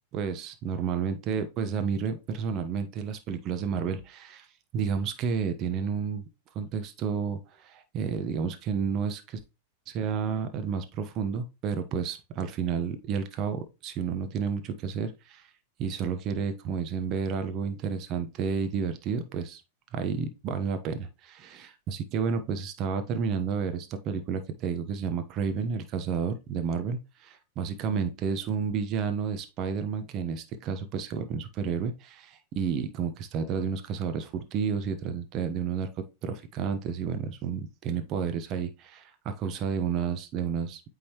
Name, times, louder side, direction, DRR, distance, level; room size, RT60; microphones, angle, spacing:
voice 1, 0.1-4.5 4.7-6.2 6.5-9.4 9.9-15.4 15.8-19.6 19.9-35.9 36.2-41.0, right 6 dB, 40° right, 1.2 m, -31 dB
8.7 x 3.9 x 3.1 m
hypercardioid pair, 100°, 0 cm